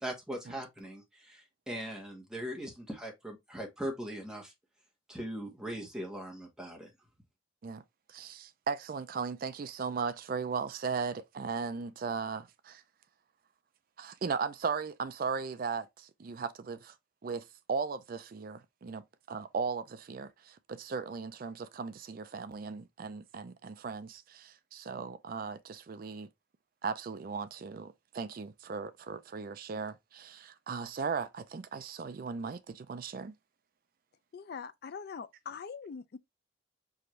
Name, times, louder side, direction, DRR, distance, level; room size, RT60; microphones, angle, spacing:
voice 1, 0.0-4.5 5.1-6.9, equal, 5° right, 1.1 m, -40 dB
voice 2, 8.1-12.8 14.0-16.9 17.2-26.3 26.8-33.4, right 5 dB, 50° right, 0.4 m, -37 dB
voice 3, 34.3-36.2, left 6 dB, 55° left, 0.4 m, -43 dB
4.8 x 2.6 x 3.0 m
head